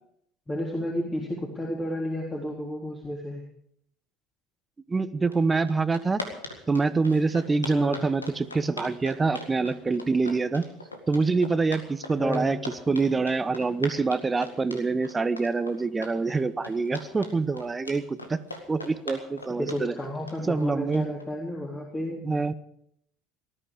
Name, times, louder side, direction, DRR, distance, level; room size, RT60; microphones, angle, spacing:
voice 1, 0.5-3.4 7.7-8.1 12.2-12.6 19.6-22.2, left 1 dB, 20° left, -2 dB, 3.7 m, -32 dB
voice 2, 4.9-6.2 6.7-10.6 11.1-18.4 18.7-19.9 20.5-21.1 22.2-22.5, right 4 dB, 20° right, 14 dB, 1.1 m, -25 dB
sound 1, 5.3-5.4 5.7-21.2, left 2 dB, 90° left, 1.9 m, -40 dB
19.5 x 13.5 x 5.0 m, 0.69 s
figure-of-eight pair, 65°, 0 cm